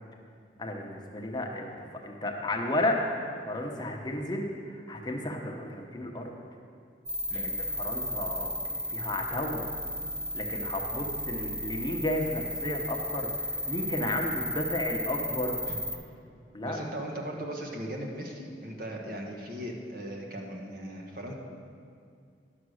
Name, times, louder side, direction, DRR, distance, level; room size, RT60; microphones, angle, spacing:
voice 1, 0.6-1.7 2.0-3.0 3.5-6.3 7.3-9.7 10.3-15.6 16.5-16.8, left 1 dB, 25° left, 1 dB, 0.9 m, -33 dB
sound 1, 7.1-15.9, equal, 30° right, 1.2 m, -34 dB
voice 2, 16.6-21.3, right 1 dB, 55° right, 0 dB, 1.3 m, -38 dB
10.5 x 6.7 x 6.4 m, 2.3 s
head